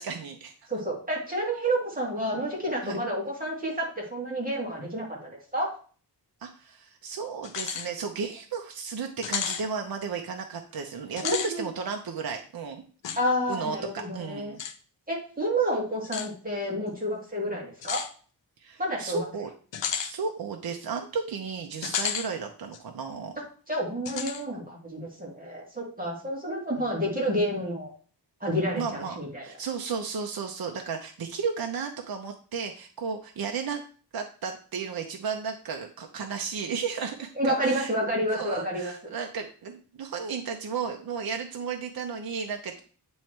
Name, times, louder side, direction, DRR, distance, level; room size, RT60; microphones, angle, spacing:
voice 1, 0.0-0.5 2.8-3.0 6.4-12.8 13.5-14.6 18.6-19.5 20.0-23.3 26.8-26.9 28.7-33.8 34.1-37.9 38.3-42.8, right 5 dB, 55° right, 3 dB, 0.8 m, -34 dB
voice 2, 0.7-3.9 4.1-5.7 11.2-11.7 13.2-14.6 15.1-18.0 18.8-19.3 23.7-27.9 28.4-29.4 37.4-38.9, equal, 20° right, -3 dB, 2.2 m, -29 dB
sound 1, 7.4-7.9 8.3-8.4 9.2-9.6 11.1-11.5 13.0-13.2 14.6-14.7 16.0-16.3 17.8-18.1 19.7-20.1 21.8-22.3 22.7-22.8 24.1-24.4, left 8 dB, 80° left, 0.7 m, -32 dB
9.0 x 3.2 x 4.5 m, 0.41 s
wide cardioid pair, 135°, 43 cm